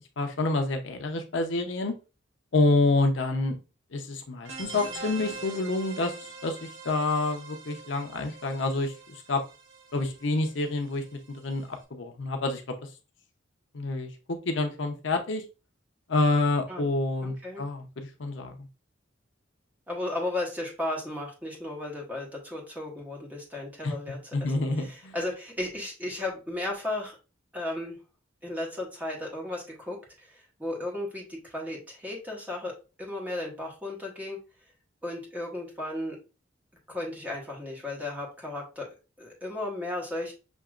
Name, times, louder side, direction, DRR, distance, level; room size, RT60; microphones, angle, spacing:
voice 1, 0.2-1.9 2.5-3.6 3.9-6.2 6.4-9.4 9.9-12.7 13.7-15.4 16.1-18.6 23.8-23.9 24.3-25.1, left 2 dB, 65° left, 5 dB, 0.7 m, -28 dB
sound 1, 4.4-11.8, right 4 dB, 85° right, 1.1 m, -44 dB
voice 2, 17.2-17.6 19.9-27.2 27.5-28.0 28.4-32.7 33.0-34.4 35.0-36.2 36.9-40.3, left 1 dB, 10° right, -2 dB, 1.2 m, -35 dB
6.2 x 2.9 x 2.4 m, 0.31 s
head